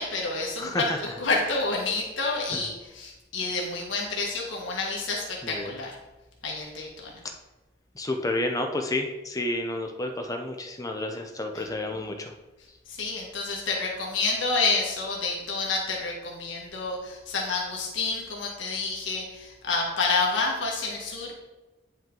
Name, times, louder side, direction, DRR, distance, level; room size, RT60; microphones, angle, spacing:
voice 1, 0.0-5.9 6.4-7.2 11.5-11.7 12.8-21.3, left 3 dB, 85° left, -2 dB, 1.5 m, -29 dB
voice 2, 0.6-1.0 2.5-2.6 5.4-5.7 7.9-12.3, left 1 dB, 20° left, 4 dB, 0.6 m, -30 dB
9.0 x 5.5 x 3.8 m, 1.1 s
head